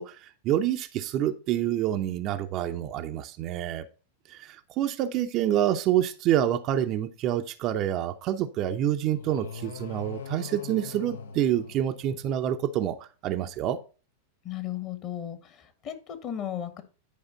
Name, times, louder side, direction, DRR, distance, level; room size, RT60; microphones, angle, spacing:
voice 1, 0.0-3.8 4.3-13.8, right 11 dB, 40° right, 7 dB, 0.7 m, -27 dB
sound 1, 9.1-12.5, left 6 dB, 65° left, 0.8 m, -42 dB
voice 2, 14.4-16.8, left 10 dB, 35° left, 10 dB, 1.5 m, -35 dB
10.5 x 5.0 x 3.9 m, 0.34 s
figure-of-eight pair, 90°, 0 cm